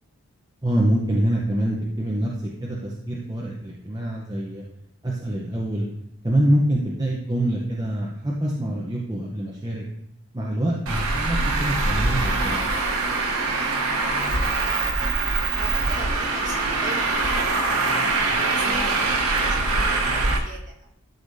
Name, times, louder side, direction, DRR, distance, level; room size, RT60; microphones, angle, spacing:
voice 1, 0.6-2.3 2.6-4.6 5.0-5.8 6.2-9.8 10.3-12.5 18.3-18.4, right 1 dB, 20° right, -3 dB, 0.7 m, -25 dB
Traffic noise roadway noise, 10.9-20.4, right 3 dB, 85° right, 1.0 m, -23 dB
voice 2, 15.5-17.8 18.5-20.9, right 2 dB, 35° right, -2 dB, 1.4 m, -40 dB
12.0 x 4.9 x 2.7 m, 0.76 s
head